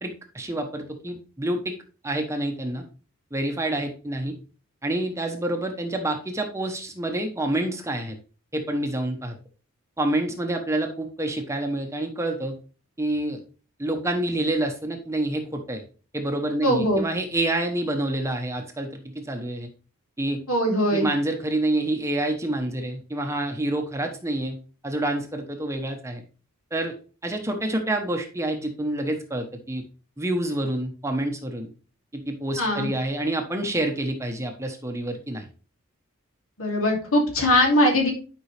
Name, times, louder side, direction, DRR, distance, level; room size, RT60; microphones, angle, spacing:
voice 1, 0.0-1.8 2.0-2.8 3.3-4.3 4.8-8.2 8.5-9.3 10.0-12.5 13.0-13.4 13.8-15.8 16.1-18.9 19.1-19.7 20.2-20.4 20.9-24.6 24.8-26.2 26.7-26.9 27.2-29.8 30.2-31.7 32.1-35.5, right 1 dB, 15° right, 4 dB, 1.0 m, -27 dB
voice 2, 16.6-17.0 20.5-21.1 32.6-32.9 36.6-38.1, left 1 dB, 70° left, 1 dB, 2.9 m, -21 dB
11.0 x 5.4 x 3.3 m, 0.37 s
head